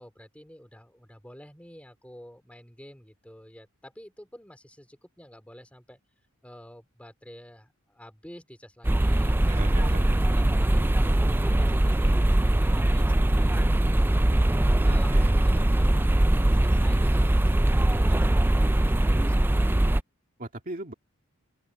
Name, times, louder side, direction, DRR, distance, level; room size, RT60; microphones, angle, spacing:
voice 1, 0.0-6.0 6.4-9.6 9.9-10.8 11.2-18.5 18.7-19.6, equal, 5° left, 3.9 m, -49 dB
sound 1, 8.8-20.0, right 1 dB, 10° right, 0.3 m, -22 dB
voice 2, 9.5-10.0 14.8-15.4 20.4-20.9, right 1 dB, 40° right, 2.3 m, -38 dB
open air
head